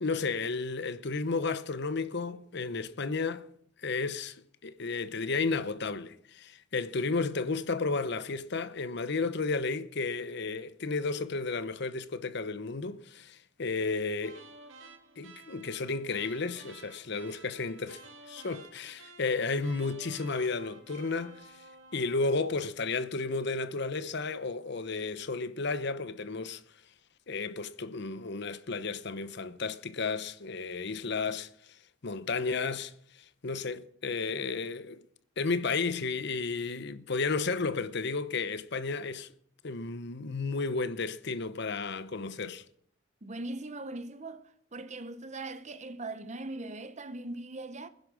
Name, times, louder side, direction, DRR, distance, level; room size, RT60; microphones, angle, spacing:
voice 1, 0.0-3.4 3.8-14.4 15.2-18.0 18.3-21.5 21.9-26.6 27.3-31.8 32.0-35.0 35.4-39.3 39.6-42.6, left 4 dB, 60° left, 0.9 m, -33 dB
sound 1, 14.2-22.5, right 3 dB, 75° right, 2.0 m, -52 dB
voice 2, 43.2-44.4 44.7-47.9, right 2 dB, 35° right, 1.0 m, -40 dB
20.5 x 10.5 x 6.3 m
head